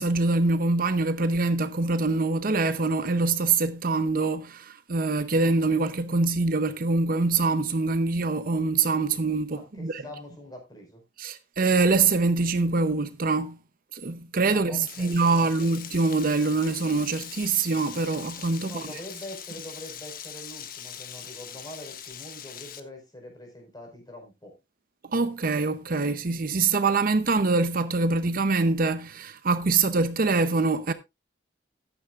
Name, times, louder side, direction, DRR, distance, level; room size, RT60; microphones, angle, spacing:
voice 1, 0.0-10.0 11.2-13.6 13.9-18.8 25.1-30.9, right 3 dB, 50° right, 0.8 m, -24 dB
voice 2, 9.5-11.0 14.5-15.7 18.6-24.5, left 1 dB, 25° left, 5.0 m, -44 dB
Frying (food), 14.8-22.8, left 9 dB, 55° left, 1.2 m, -42 dB
14.0 x 10.0 x 2.5 m
head